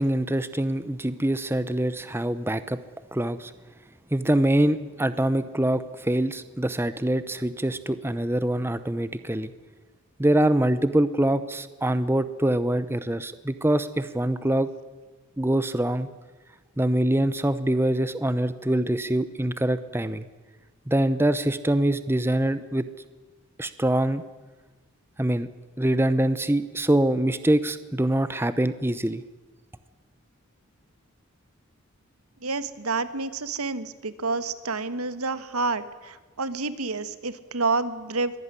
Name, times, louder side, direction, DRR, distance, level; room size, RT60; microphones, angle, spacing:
voice 1, 0.0-2.8 3.1-3.5 4.1-9.5 10.2-14.7 15.4-16.1 16.8-20.2 20.9-22.9 23.6-24.2 25.2-25.5 25.8-29.2, right 1 dB, 10° right, 13 dB, 0.7 m, -24 dB
voice 2, 32.4-38.4, right 3 dB, 90° right, 13 dB, 1.5 m, -29 dB
23.5 x 17.5 x 9.8 m, 1.3 s
head